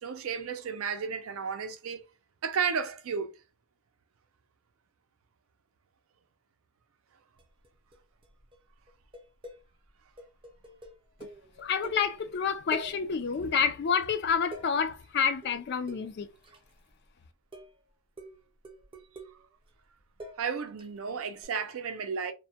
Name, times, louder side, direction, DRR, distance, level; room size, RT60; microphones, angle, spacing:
voice 1, 0.0-2.0 2.4-3.4 20.4-22.3, right 6 dB, 75° right, 0.5 m, -33 dB
sound 1, 7.4-8.0 8.2-8.6 8.9-12.4 12.7-13.6 13.9-17.1 17.5-17.8 18.2-21.0 21.4-21.5, right 1 dB, 25° right, 0.5 m, -47 dB
voice 2, 11.6-16.3, left 6 dB, 50° left, 0.4 m, -28 dB
2.2 x 2.1 x 2.7 m
head